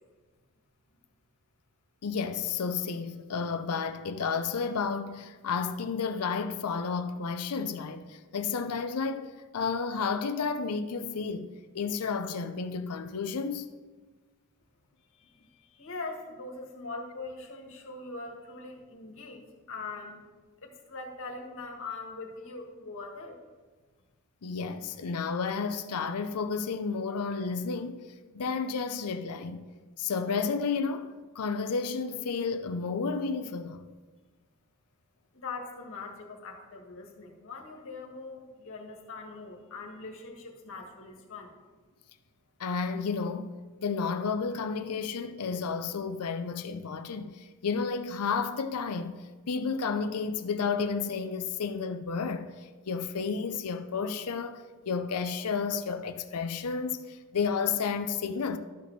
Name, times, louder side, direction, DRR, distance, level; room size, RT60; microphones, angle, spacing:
voice 1, 2.0-13.7 24.4-28.0 28.3-29.6 30.0-33.8 42.6-58.6, left 5 dB, 80° left, 0.6 m, -32 dB
voice 2, 15.1-20.2 20.6-23.4 35.3-41.5, left 3 dB, 65° left, 1.6 m, -42 dB
12.0 x 4.2 x 6.9 m
head